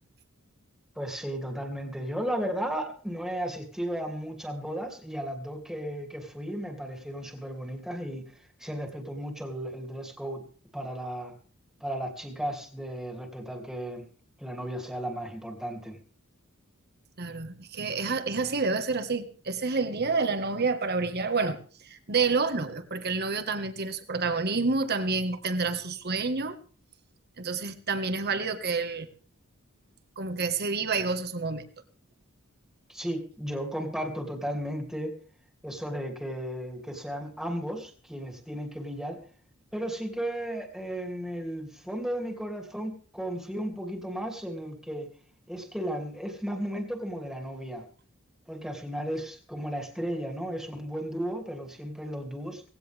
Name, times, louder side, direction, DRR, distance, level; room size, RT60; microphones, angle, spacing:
voice 1, 0.9-10.4 10.7-11.3 11.8-14.1 14.4-16.0 32.9-35.1 35.6-39.2 39.7-45.1 45.5-47.8 48.5-52.6, equal, ahead, 3 dB, 2.8 m, -34 dB
voice 2, 17.2-21.6 21.8-26.6 27.4-29.1 30.2-31.6, right 4 dB, 50° right, 10 dB, 1.7 m, -28 dB
18.5 x 16.5 x 3.5 m, 0.42 s
head